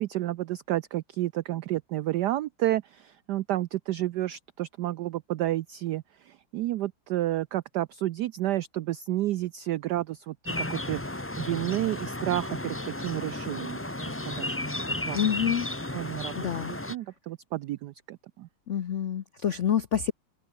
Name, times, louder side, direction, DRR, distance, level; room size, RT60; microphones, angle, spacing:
voice 1, 0.0-14.7 15.1-15.2 15.9-16.4 16.7-18.5, right 14 dB, 80° right, 0.9 m, -31 dB
sound 1, 10.4-16.9, left 1 dB, 10° left, 0.7 m, -33 dB
voice 2, 15.1-15.7 16.4-16.7 18.7-20.1, left 8 dB, 70° left, 0.7 m, -27 dB
open air
omnidirectional pair, 2.3 m